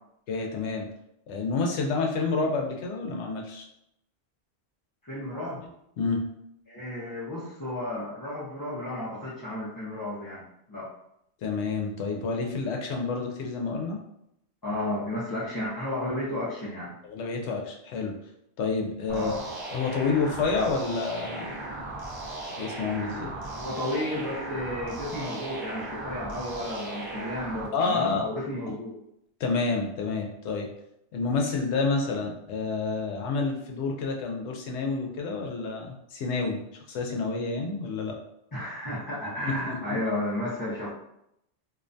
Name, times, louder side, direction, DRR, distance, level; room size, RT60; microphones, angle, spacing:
voice 1, 0.3-0.9 1.3-3.7 6.0-6.3 11.4-14.0 17.0-18.1 18.6-19.4 19.7-21.6 22.6-23.3 27.7-28.3 29.4-30.7 31.1-38.2 39.5-40.0, left 4 dB, 85° left, 1 dB, 0.9 m, -29 dB
voice 2, 5.0-5.6 6.7-10.4 10.7-10.9 14.6-16.9 19.1-19.4 23.5-28.9 38.5-40.9, left 1 dB, 30° left, -9 dB, 0.4 m, -33 dB
sound 1, 19.1-27.7, right 2 dB, 30° right, 0.6 m, -37 dB
2.6 x 2.2 x 2.5 m, 0.79 s
omnidirectional pair, 1.1 m